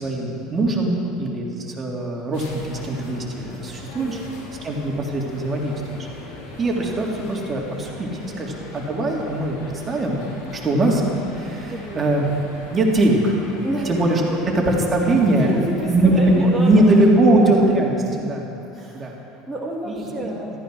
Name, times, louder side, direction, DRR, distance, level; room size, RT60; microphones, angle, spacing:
voice 1, 0.0-4.2 4.6-6.1 6.6-8.1 8.4-10.2 10.6-11.1 11.4-12.2 12.7-13.3 13.9-14.2 14.5-15.5 15.8-16.3 16.6-18.5 18.9-19.1 19.9-20.3, right 1 dB, 30° right, -1 dB, 3.5 m, -21 dB
voice 2, 0.8-1.2 4.0-4.3 8.2-8.5 11.7-12.1 13.6-13.9 15.3-16.8 18.7-20.5, right 1 dB, 10° right, -5 dB, 2.5 m, -30 dB
sound 1, 2.3-17.1, left 2 dB, 70° left, 3.1 m, -40 dB
14.0 x 14.0 x 6.4 m, 2.8 s
hypercardioid pair, 75°, 0 cm